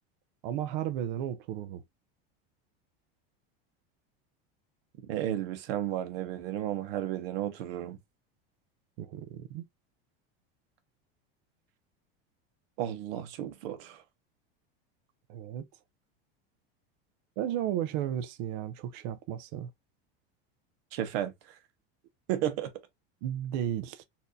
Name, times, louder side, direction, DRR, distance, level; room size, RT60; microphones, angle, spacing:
voice 1, 0.4-1.8 9.0-9.6 15.3-15.7 17.4-19.7 23.2-24.0, right 10 dB, 50° right, 0.5 m, -34 dB
voice 2, 5.1-8.0 12.8-14.0 20.9-21.6 22.3-22.7, right 12 dB, 70° right, 1.0 m, -33 dB
4.1 x 2.6 x 2.4 m
supercardioid pair, 175°, 31 cm